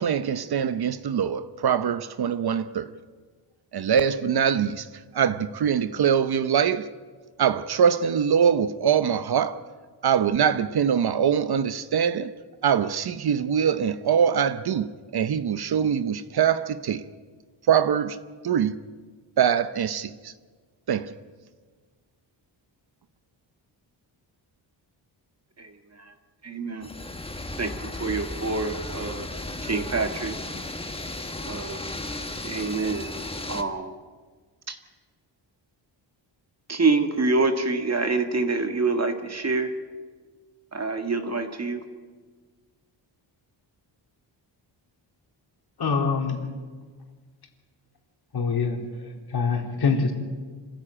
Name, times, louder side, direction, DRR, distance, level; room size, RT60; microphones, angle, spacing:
voice 1, 0.0-2.9 3.7-4.9 5.1-6.9 7.4-9.6 10.0-12.3 12.6-17.0 17.7-18.2 18.4-18.8 19.4-20.3 20.9-21.1, right 8 dB, 55° right, 0.9 m, -23 dB
voice 2, 25.6-26.1 26.4-26.9 27.6-29.3 29.6-30.4 31.4-31.9 32.4-33.1 33.5-33.9 34.7-34.8 36.7-39.7 40.7-41.8, right 3 dB, 35° right, 1.9 m, -26 dB
sound 1, 26.8-33.6, left 2 dB, 10° left, 1.5 m, -35 dB
voice 3, 45.8-46.5 48.3-48.8 49.3-50.1, left 5 dB, 55° left, 3.7 m, -24 dB
26.0 x 14.5 x 8.8 m
cardioid pair, 120°, 46 cm